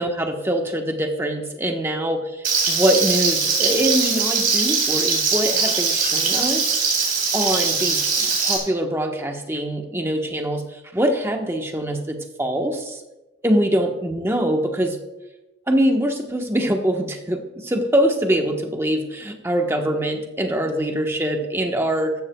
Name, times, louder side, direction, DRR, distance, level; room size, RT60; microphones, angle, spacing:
voice 1, 0.0-2.2 2.7-6.6 7.3-10.6 10.9-13.0 13.4-15.0 15.7-22.1, right 1 dB, 15° right, 3 dB, 1.2 m, -23 dB
Frying (food), 2.4-8.6, right 5 dB, 50° right, 4.2 m, -21 dB
14.0 x 13.5 x 2.3 m, 1.0 s
head